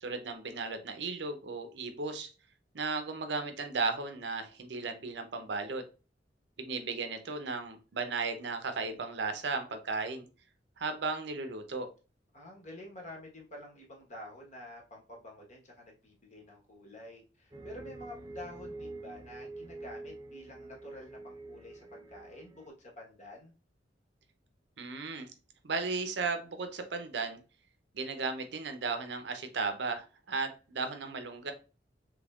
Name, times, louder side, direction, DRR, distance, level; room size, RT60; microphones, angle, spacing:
voice 1, 0.0-2.3 2.7-5.8 6.6-10.3 10.8-11.9 24.8-25.3 25.6-27.4 27.9-31.5, right 4 dB, 65° right, 7 dB, 0.6 m, -35 dB
voice 2, 12.3-23.5, left 1 dB, 40° left, 0 dB, 1.2 m, -49 dB
sound 1, 17.5-22.7, right 2 dB, 20° right, 0.4 m, -46 dB
3.5 x 3.2 x 2.4 m, 0.34 s
head